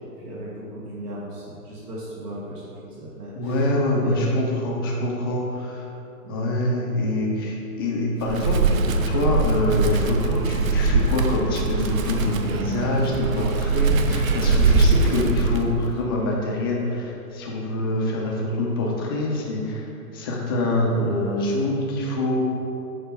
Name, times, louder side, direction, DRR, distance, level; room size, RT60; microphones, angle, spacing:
voice 1, 0.2-3.7 4.0-4.4 6.2-6.5, right 1 dB, 80° right, -6 dB, 1.5 m, -37 dB
voice 2, 3.3-5.9 6.3-22.4, left 1 dB, 15° left, -2 dB, 0.5 m, -25 dB
Wind, 8.2-16.0, right 3 dB, 60° right, 0.7 m, -22 dB
6.9 x 4.5 x 4.3 m, 2.8 s
hypercardioid pair, 130°, 46 cm